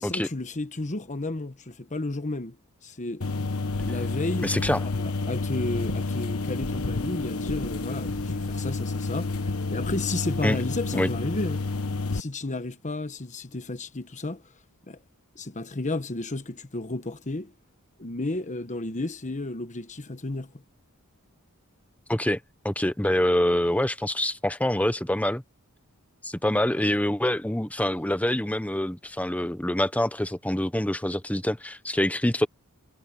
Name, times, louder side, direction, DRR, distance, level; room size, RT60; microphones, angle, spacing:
voice 1, 0.0-2.6 2.8-3.3 3.8-4.5 4.8-11.6 12.1-14.4 14.9-15.0 15.3-17.5 18.0-20.5, left 2 dB, 35° left, 1.2 m, -32 dB
sound 1, 3.2-12.2, left 3 dB, 70° left, 1.3 m, -29 dB
voice 2, 4.4-4.9 10.4-10.6 10.9-11.1 22.1-22.4 22.6-25.4 26.2-32.5, left 1 dB, 5° left, 1.0 m, -25 dB
head